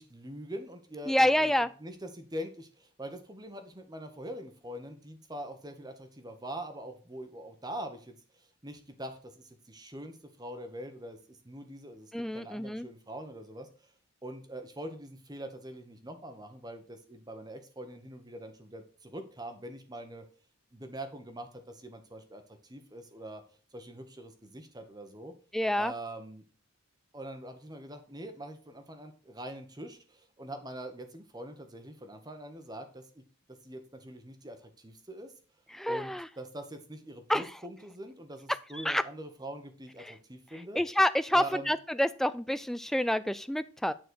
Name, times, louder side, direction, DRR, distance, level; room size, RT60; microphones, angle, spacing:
voice 1, 0.0-13.9 14.2-20.2 20.7-23.4 23.7-25.3 25.8-26.4 27.1-33.2 33.6-35.3 35.9-40.8 41.3-41.7, right 1 dB, 15° right, 6 dB, 1.2 m, -43 dB
voice 2, 1.1-1.7 12.1-12.9 25.5-25.9 35.7-36.3 37.3-37.4 38.8-39.0 40.8-43.9, left 1 dB, ahead, 14 dB, 0.3 m, -27 dB
9.5 x 4.4 x 6.3 m, 0.40 s
head